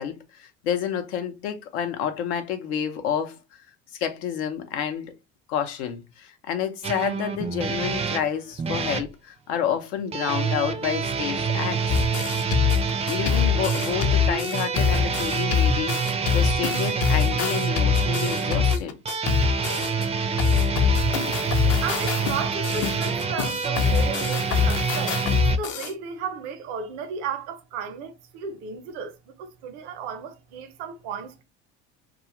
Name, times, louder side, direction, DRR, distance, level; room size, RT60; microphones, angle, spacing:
voice 1, 0.0-3.4 3.9-5.1 5.5-11.9 13.1-16.0 16.3-19.0, left 8 dB, 85° left, 0.7 m, -29 dB
sound 1, 6.8-9.1 10.1-25.6, right 5 dB, 20° right, 0.4 m, -27 dB
sound 2, 11.9-20.0 20.4-25.9, left 7 dB, 50° left, 0.5 m, -24 dB
voice 2, 21.8-31.4, right 6 dB, 80° right, 0.7 m, -34 dB
2.4 x 2.3 x 2.9 m
supercardioid pair, 90°, 33 cm